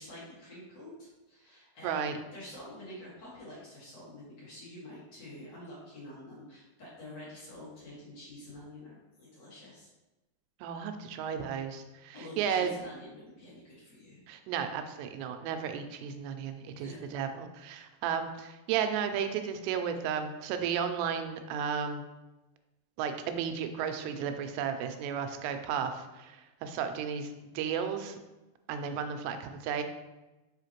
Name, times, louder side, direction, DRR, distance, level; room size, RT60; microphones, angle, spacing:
voice 1, 0.0-9.9 12.1-14.2 16.8-17.0, left 1 dB, 80° left, -7 dB, 1.0 m, -47 dB
voice 2, 1.8-2.2 10.6-12.7 14.3-22.0 23.0-28.2 28.7-29.8, right 7 dB, 90° right, 7 dB, 2.7 m, -34 dB
5.7 x 5.6 x 3.0 m, 1.0 s
omnidirectional pair, 4.8 m